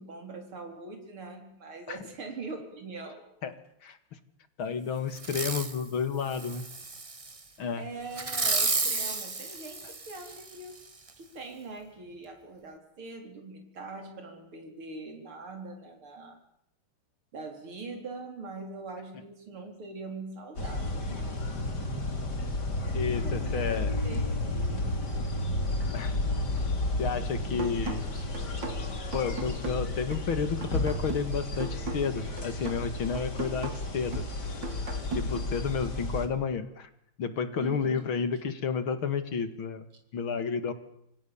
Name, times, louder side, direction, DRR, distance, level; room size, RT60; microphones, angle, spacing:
voice 1, 0.0-3.2 7.8-10.7 11.2-16.4 17.3-21.7 23.1-25.2 28.1-28.2 37.6-38.1, right 3 dB, 75° right, 4 dB, 4.9 m, -42 dB
voice 2, 4.6-6.6 7.6-7.8 22.9-24.0 25.9-26.1 26.5-26.6 27.0-28.1 29.1-34.3 35.1-36.9 37.2-39.8 40.1-40.7, left 6 dB, 70° left, 11 dB, 2.8 m, -31 dB
Fireworks, 5.2-5.8 6.3-7.4 8.1-10.5 11.1-11.2, right 3 dB, 20° right, 1.1 m, -32 dB
sound 1, 20.6-36.3, left 2 dB, 50° left, 3.7 m, -32 dB
sound 2, 27.6-35.6, right 3 dB, 55° right, 3.0 m, -39 dB
28.0 x 26.0 x 7.2 m, 0.76 s
omnidirectional pair, 2.4 m